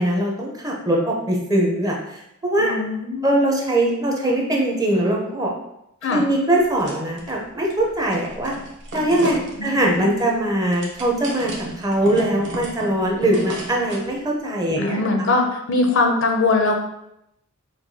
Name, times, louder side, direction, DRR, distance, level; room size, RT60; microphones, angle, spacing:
voice 1, 0.0-2.0 2.4-2.7 3.2-5.5 6.1-8.5 8.9-11.5 11.8-15.0, right 1 dB, 20° right, -1 dB, 0.5 m, -21 dB
voice 2, 2.6-3.3 6.0-6.2 9.6-10.2 14.8-16.7, left 3 dB, 60° left, 3 dB, 0.5 m, -21 dB
sound 1, 6.6-7.3 7.7-14.1, right 1 dB, 60° right, 0.7 m, -34 dB
4.5 x 2.2 x 2.7 m, 0.81 s
head